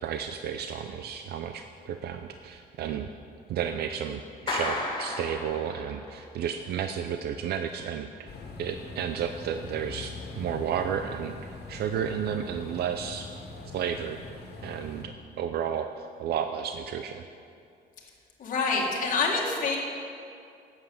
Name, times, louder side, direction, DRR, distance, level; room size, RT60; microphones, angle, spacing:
voice 1, 0.0-3.1 3.5-8.3 8.6-13.3 13.7-14.2 14.6-17.2, right 8 dB, 80° right, 7 dB, 0.5 m, -32 dB
Clapping, 4.5-6.2, left 2 dB, 30° left, 1.4 m, -33 dB
sound 1, 8.3-15.0, left 3 dB, 85° left, 1.7 m, -42 dB
voice 2, 18.4-19.8, left 4 dB, 50° left, -2 dB, 1.9 m, -26 dB
11.0 x 8.1 x 7.0 m, 2.4 s
cardioid pair, 175°, 17 cm